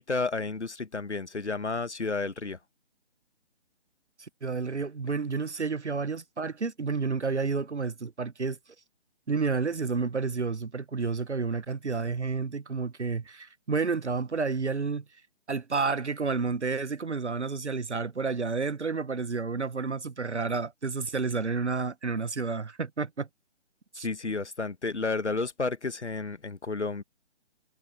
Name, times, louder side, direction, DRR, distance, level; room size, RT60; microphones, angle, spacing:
voice 1, 0.0-2.6 24.0-27.0, left 3 dB, 75° left, 1.6 m, -31 dB
voice 2, 4.4-8.6 9.3-15.0 15.5-23.3 23.9-24.1, right 4 dB, 80° right, 1.1 m, -30 dB
figure-of-eight pair, 145°, 34 cm